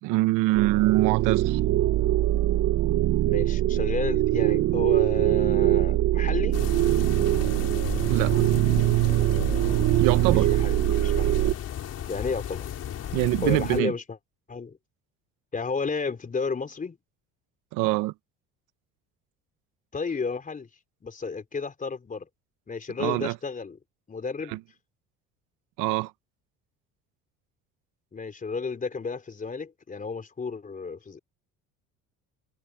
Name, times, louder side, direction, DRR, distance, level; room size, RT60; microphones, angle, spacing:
voice 1, 0.0-1.6 8.1-8.4 10.0-10.5 13.1-13.9 17.7-18.1 23.0-23.4 24.5-24.6 25.8-26.1, right 19 dB, 80° right, 1.1 m, -24 dB
sound 1, 0.5-11.5, right 14 dB, 60° right, 1.1 m, -23 dB
voice 2, 3.3-6.6 10.6-11.3 12.1-12.7 13.4-14.0 14.5-14.8 15.5-17.0 19.9-20.7 21.0-22.3 22.7-23.8 24.1-24.6 28.1-31.2, left 4 dB, 25° left, 3.9 m, -32 dB
sound 2, 6.5-13.8, left 10 dB, 50° left, 4.5 m, -34 dB
cardioid pair, 105°, 31 cm